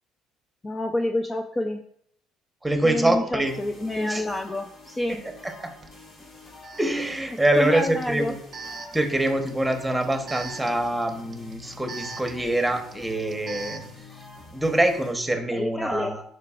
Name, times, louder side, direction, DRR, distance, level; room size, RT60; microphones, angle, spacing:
voice 1, 0.6-1.8 2.8-5.2 7.6-8.3 15.5-16.2, left 1 dB, 20° left, 5 dB, 0.4 m, -28 dB
voice 2, 2.6-3.5 4.1-4.3 5.1-5.2 5.4-5.7 6.8-8.4 8.9-13.9 14.5-16.2, right 1 dB, 5° right, 5 dB, 1.0 m, -25 dB
sound 1, 3.4-15.1, left 3 dB, 50° left, 2.4 m, -47 dB
Alarm, 5.8-5.9 6.6-14.0, right 4 dB, 35° right, 0.7 m, -42 dB
9.2 x 4.9 x 2.5 m, 0.66 s
supercardioid pair, 90°, 0 cm